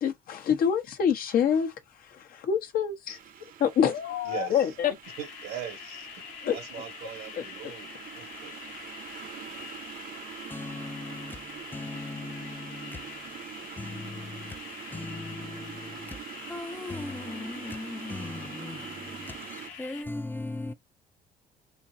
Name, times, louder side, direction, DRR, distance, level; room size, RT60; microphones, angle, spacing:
voice 1, 0.0-1.7 2.1-3.2 3.6-4.9 6.4-6.6 7.4-7.5, left 8 dB, 60° left, 1.0 m, -26 dB
sound 1, 3.1-19.7, right 9 dB, 55° right, 0.7 m, -44 dB
voice 2, 4.2-4.7 5.2-6.1 6.5-8.6, right 10 dB, 85° right, 1.6 m, -40 dB
sound 2, 5.0-20.0, left 7 dB, 90° left, 1.2 m, -45 dB
voice 3, 10.5-13.3 13.8-20.7, left 2 dB, 10° left, 0.4 m, -39 dB
4.4 x 2.6 x 2.6 m
cardioid pair, 110°, 17 cm